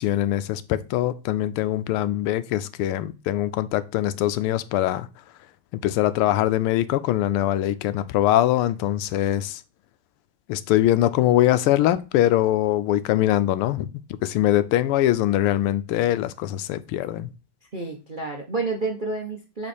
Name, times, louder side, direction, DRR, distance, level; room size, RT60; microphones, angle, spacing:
voice 1, 0.0-5.1 5.7-9.6 10.5-13.9 14.2-17.3, left 13 dB, 90° left, 1.5 m, -22 dB
voice 2, 17.7-19.7, right 3 dB, 55° right, 0.5 m, -29 dB
7.6 x 3.7 x 4.3 m
omnidirectional pair, 2.4 m